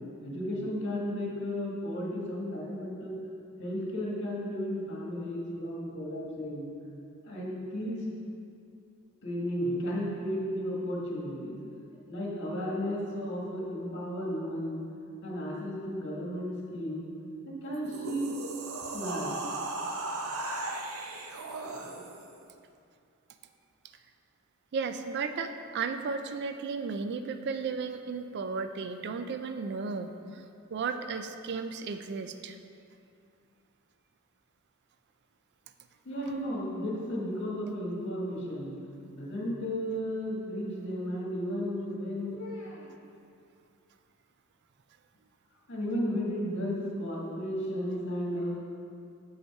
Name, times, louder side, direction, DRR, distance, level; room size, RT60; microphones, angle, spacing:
voice 1, 0.2-3.1 3.6-6.7 7.2-8.0 9.2-11.6 12.1-14.8 15.2-17.1 17.4-18.3 18.9-19.5 36.0-38.7 39.1-42.9 45.7-48.6, equal, 60° left, -3 dB, 1.6 m, -34 dB
sound 1, 17.7-22.3, right 2 dB, 80° right, 0.7 m, -37 dB
voice 2, 24.7-30.4 30.7-32.6, right 5 dB, 50° right, 8 dB, 0.4 m, -34 dB
6.6 x 5.2 x 4.7 m, 2.4 s
head